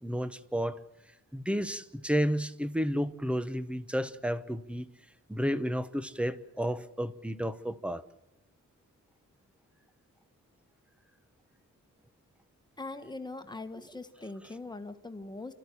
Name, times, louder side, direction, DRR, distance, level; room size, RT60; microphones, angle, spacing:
voice 1, 0.0-0.8 1.3-4.9 5.3-8.0, equal, 5° right, 0.9 m, -31 dB
voice 2, 12.8-15.5, left 2 dB, 15° left, 1.4 m, -41 dB
29.0 x 13.5 x 9.9 m
wide cardioid pair, 165°, 31 cm